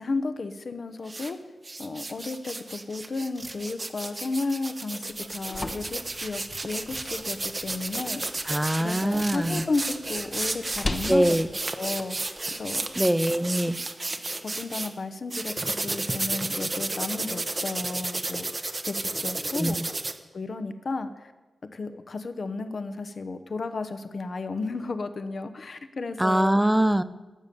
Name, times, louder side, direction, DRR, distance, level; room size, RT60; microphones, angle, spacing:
voice 1, 0.0-1.4 1.8-8.4 8.8-11.4 11.7-12.9 13.6-13.7 14.4-19.9 20.3-21.3 21.7-26.6, left 3 dB, 50° left, 10 dB, 1.0 m, -33 dB
sound 1, 1.0-1.3 1.6-14.9 15.3-20.1, right 2 dB, 30° right, 1.0 m, -32 dB
sound 2, 5.0-13.0, left 2 dB, 30° left, 1.1 m, -40 dB
voice 2, 8.5-9.6 11.1-11.5 13.0-13.8 19.6-19.9 26.2-27.0, right 1 dB, 5° right, 15 dB, 0.5 m, -23 dB
18.5 x 7.1 x 6.9 m, 1.2 s
wide cardioid pair, 110°, 0 cm